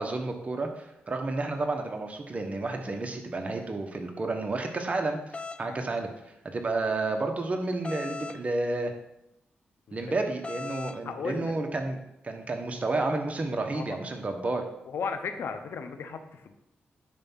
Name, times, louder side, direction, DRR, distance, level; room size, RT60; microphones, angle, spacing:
voice 1, 0.0-5.2 5.6-6.1 6.4-8.9 9.9-14.6, right 2 dB, 35° right, 4 dB, 1.4 m, -31 dB
sound 1, 5.3-5.6 7.8-8.4 10.4-11.0, left 4 dB, 30° left, 0.4 m, -37 dB
voice 2, 9.9-10.3 11.0-11.6 13.7-14.0 14.4-14.6 14.8-16.5, left 5 dB, 80° left, 8 dB, 0.9 m, -36 dB
10.5 x 3.5 x 5.7 m, 0.84 s
cardioid pair, 80°, 4 cm